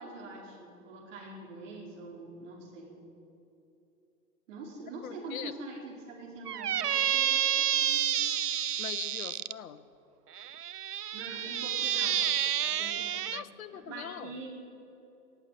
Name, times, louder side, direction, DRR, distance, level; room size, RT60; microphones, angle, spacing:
voice 1, 0.0-3.0 4.5-8.1 11.1-12.2 12.6-13.4 13.7-14.5, right 2 dB, 50° right, -2 dB, 4.9 m, -44 dB
voice 2, 5.0-5.5 8.8-9.8 13.3-14.4, left 9 dB, 60° left, 12 dB, 0.9 m, -41 dB
Squeak, 6.5-9.5 10.4-13.4, right 10 dB, 75° right, 0.6 m, -29 dB
18.0 x 8.2 x 9.2 m, 2.9 s
figure-of-eight pair, 110°, 47 cm